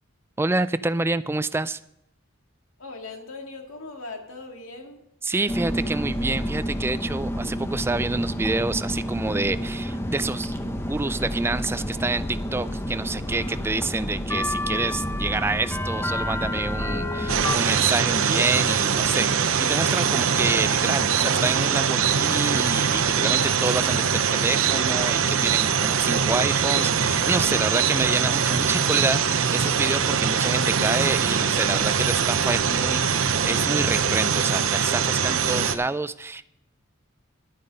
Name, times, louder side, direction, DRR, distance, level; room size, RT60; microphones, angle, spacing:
voice 1, 0.4-1.8 5.2-36.5, right 3 dB, 10° right, 14 dB, 0.3 m, -28 dB
voice 2, 2.8-5.0, left 3 dB, 80° left, 3 dB, 2.0 m, -39 dB
sound 1, 5.5-17.6, equal, 10° left, 0.7 m, -29 dB
sound 2, 17.3-35.8, right 7 dB, 75° right, 0.7 m, -22 dB
11.5 x 9.5 x 5.2 m, 0.81 s
head